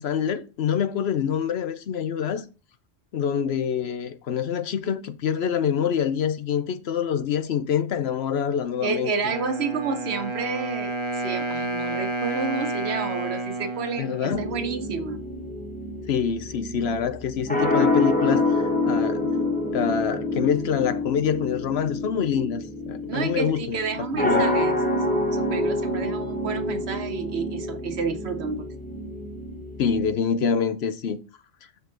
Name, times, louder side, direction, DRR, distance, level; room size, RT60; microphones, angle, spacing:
voice 1, 0.0-2.4 3.1-9.1 14.0-14.4 16.1-19.3 19.7-23.8 24.2-24.4 29.8-31.2, left 7 dB, 70° left, 0.9 m, -26 dB
voice 2, 8.8-15.2 23.1-24.8 25.1-28.7, right 5 dB, 70° right, 1.2 m, -30 dB
Wind instrument woodwind instrument, 9.3-15.2, right 2 dB, 30° right, 0.8 m, -31 dB
sound 1, 14.3-30.1, left 2 dB, 10° left, 0.9 m, -27 dB
6.1 x 5.4 x 3.9 m
omnidirectional pair, 1.1 m